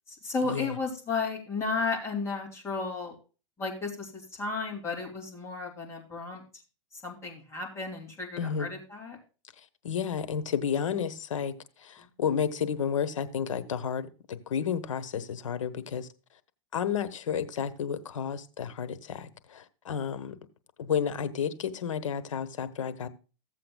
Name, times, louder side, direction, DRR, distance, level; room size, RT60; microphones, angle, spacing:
voice 1, 0.1-3.1 3.6-6.4 7.0-9.2 12.0-12.1, left 4 dB, 15° left, 2.9 m, -33 dB
voice 2, 8.4-8.7 9.8-11.5 11.8-16.1 16.7-20.4 20.8-23.1, left 7 dB, 85° left, 1.1 m, -31 dB
15.0 x 7.7 x 2.3 m
hypercardioid pair, 130°, 16 cm